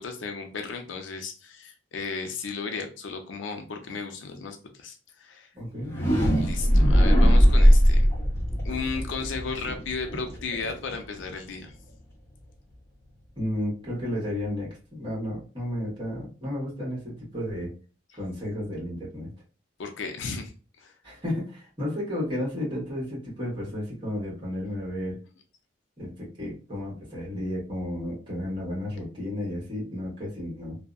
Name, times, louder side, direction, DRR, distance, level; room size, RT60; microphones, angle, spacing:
voice 1, 0.0-5.5 6.4-8.0 8.6-11.7 19.8-20.5 20.8-20.9, left 4 dB, 80° left, 5 dB, 0.5 m, -34 dB
voice 2, 5.5-5.9 13.4-17.7 18.1-19.3 21.0-25.2 26.0-30.8, left 1 dB, 25° right, -6 dB, 1.2 m, -32 dB
sound 1, 5.7-11.6, equal, 15° left, 0.8 m, -20 dB
2.6 x 2.0 x 2.4 m, 0.36 s
head